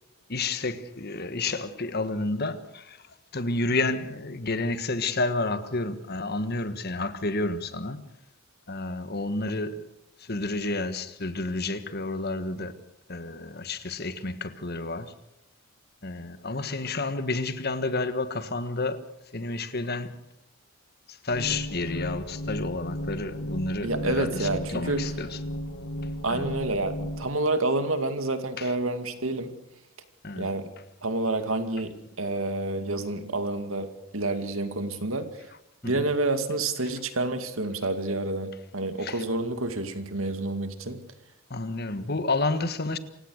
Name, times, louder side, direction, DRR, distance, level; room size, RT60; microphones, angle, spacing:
voice 1, 0.3-3.0 3.3-8.0 8.7-9.8 10.2-12.8 13.1-15.1 16.0-19.0 19.3-20.2 21.1-25.4 26.3-26.5 28.6-28.7 30.2-30.5 35.8-36.1 39.0-39.2 41.5-43.0, left 2 dB, 50° left, 1.5 m, -30 dB
sound 1, 21.3-27.3, equal, 90° left, 2.5 m, -35 dB
voice 2, 23.8-25.1 26.2-29.5 30.3-30.7 31.0-33.9 34.1-35.3 35.8-41.0, right 2 dB, 70° right, 2.3 m, -28 dB
27.5 x 16.5 x 6.5 m
head